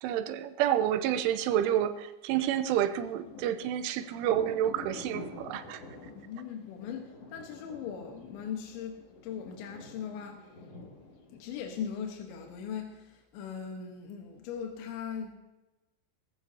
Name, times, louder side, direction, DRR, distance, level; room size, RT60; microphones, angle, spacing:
voice 1, 0.0-5.8, right 10 dB, 80° right, 10 dB, 3.1 m, -29 dB
Thunder, 2.7-12.2, left 2 dB, 50° left, 2.0 m, -48 dB
voice 2, 6.1-10.6 11.3-15.3, left 7 dB, 70° left, 2 dB, 3.3 m, -39 dB
20.5 x 15.5 x 2.8 m, 1.0 s
omnidirectional pair, 5.8 m